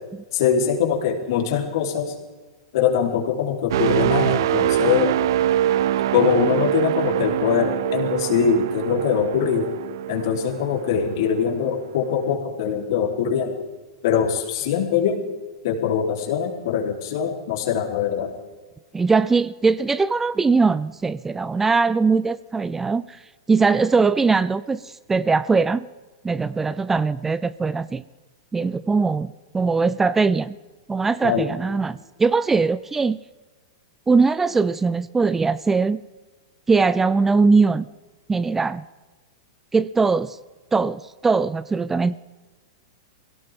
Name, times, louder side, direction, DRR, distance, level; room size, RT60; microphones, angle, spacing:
voice 1, 0.3-2.1 2.7-5.2 6.1-9.7 10.1-13.5 14.0-15.2 15.6-18.3 31.2-31.5, left 7 dB, 65° left, 1 dB, 3.7 m, -22 dB
sound 1, 3.7-11.5 12.0-12.2, right 12 dB, 65° right, 0.5 m, -24 dB
voice 2, 18.9-23.2 23.5-25.9 26.2-28.0 28.5-30.6 30.9-33.2 34.1-36.0 36.7-37.9 38.3-38.8 39.7-40.4 40.7-42.2, right 4 dB, 10° right, 17 dB, 0.4 m, -21 dB
22.0 x 17.5 x 3.7 m, 1.3 s
hypercardioid pair, 115°, 2 cm